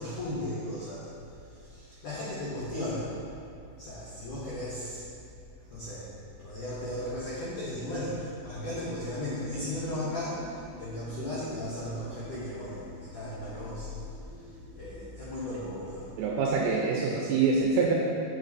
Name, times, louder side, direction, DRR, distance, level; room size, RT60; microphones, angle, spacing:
voice 1, 0.0-3.2 3.8-5.0 5.6-6.1 6.4-16.1, left 1 dB, 85° left, -8 dB, 1.7 m, -36 dB
sound 1, 8.6-15.1, left 1 dB, 55° left, 2.4 m, -48 dB
voice 2, 16.2-17.9, right 4 dB, 85° right, -2 dB, 2.6 m, -25 dB
8.2 x 7.7 x 4.1 m, 2.5 s
omnidirectional pair, 5.6 m